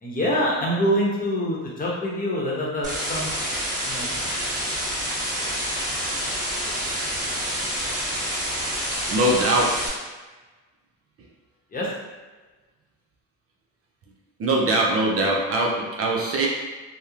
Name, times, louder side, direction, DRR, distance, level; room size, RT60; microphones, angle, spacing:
voice 1, 0.0-3.3 3.8-4.3 11.7-11.9, equal, 30° left, -5 dB, 0.8 m, -25 dB
sound 1, 2.8-9.9, equal, 10° right, 1.4 m, -28 dB
voice 2, 9.1-9.8 14.4-16.5, right 1 dB, 50° right, -1 dB, 0.5 m, -22 dB
2.9 x 2.0 x 2.4 m, 1.2 s
cardioid pair, 90°, 30 cm